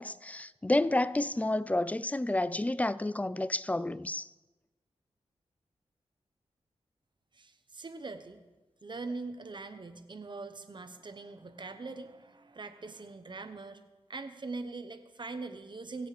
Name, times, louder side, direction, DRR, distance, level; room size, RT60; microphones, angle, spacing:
voice 1, 0.0-4.3, left 2 dB, 15° left, 0.4 m, -30 dB
voice 2, 7.3-8.4 8.8-13.8 14.1-16.1, right 3 dB, 45° right, 1.1 m, -42 dB
23.5 x 7.9 x 5.1 m
cardioid pair, 65°, 11 cm